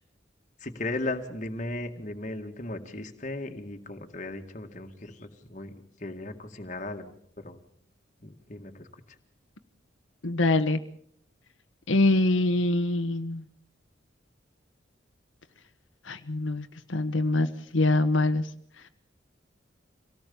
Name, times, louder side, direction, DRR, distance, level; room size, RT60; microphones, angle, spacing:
voice 1, 0.6-5.7 6.0-7.1 7.4-7.6 8.2-8.9, left 2 dB, 40° left, 5 dB, 2.0 m, -36 dB
voice 2, 10.2-10.8 11.9-13.4 16.0-18.5, left 2 dB, 85° left, 7 dB, 1.2 m, -24 dB
25.5 x 18.0 x 7.1 m, 0.66 s
head